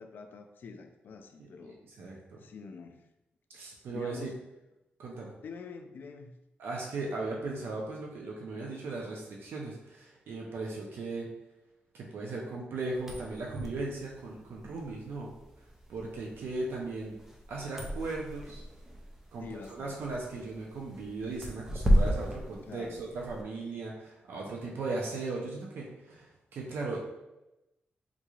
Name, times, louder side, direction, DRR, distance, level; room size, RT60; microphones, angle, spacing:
voice 1, 0.0-1.8 2.4-3.0 3.9-4.4 5.4-6.4 19.4-20.1 22.7-23.0, left 4 dB, 60° left, 6 dB, 0.3 m, -45 dB
voice 2, 1.4-2.4 3.5-4.3 5.0-5.3 6.6-11.3 11.9-15.3 15.9-17.1 17.5-18.6 19.3-27.0, right 3 dB, 80° right, -2 dB, 0.6 m, -37 dB
sound 1, 12.9-23.4, equal, 10° right, 0.4 m, -34 dB
3.7 x 3.1 x 2.3 m, 0.95 s
wide cardioid pair, 170°, 4 cm